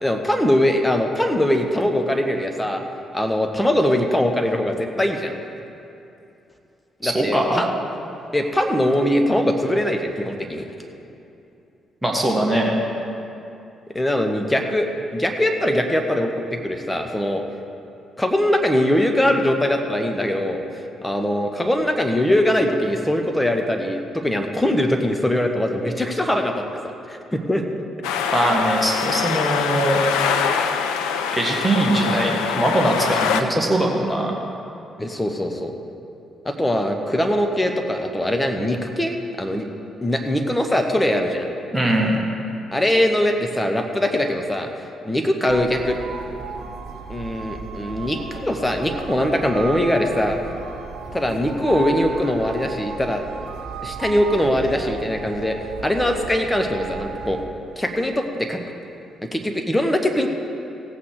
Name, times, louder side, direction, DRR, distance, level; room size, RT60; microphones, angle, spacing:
voice 1, 0.0-2.8 3.1-5.3 7.0-7.7 8.3-10.6 13.9-17.4 18.2-20.6 21.0-26.6 27.1-27.6 35.0-35.7 36.4-39.7 40.0-41.5 42.7-44.7 45.0-46.1 47.1-50.4 51.1-53.2 53.8-55.6 55.8-57.4 57.8-58.6 59.3-60.3, left 1 dB, 10° left, 4 dB, 1.3 m, -21 dB
voice 2, 7.0-7.6 12.0-12.7 28.3-30.0 31.3-34.3 41.7-42.2, right 1 dB, 5° right, -1 dB, 2.0 m, -21 dB
sound 1, 28.0-33.4, left 7 dB, 70° left, 0.5 m, -24 dB
sound 2, 45.5-57.4, right 4 dB, 65° right, 1.3 m, -34 dB
16.5 x 8.5 x 4.9 m, 2.8 s
figure-of-eight pair, 40°, 0 cm